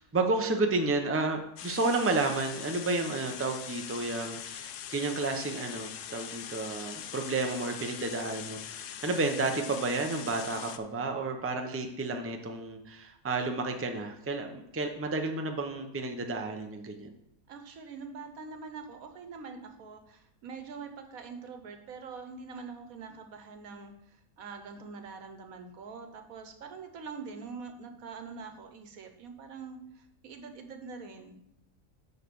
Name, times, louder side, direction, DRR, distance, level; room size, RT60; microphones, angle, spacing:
voice 1, 0.1-17.1, right 3 dB, 15° right, 4 dB, 0.6 m, -31 dB
sound 1, 1.6-10.8, left 10 dB, 70° left, 0.9 m, -42 dB
voice 2, 17.5-31.3, right 5 dB, 80° right, 6 dB, 1.4 m, -44 dB
9.4 x 4.1 x 7.0 m, 0.80 s
omnidirectional pair, 1.5 m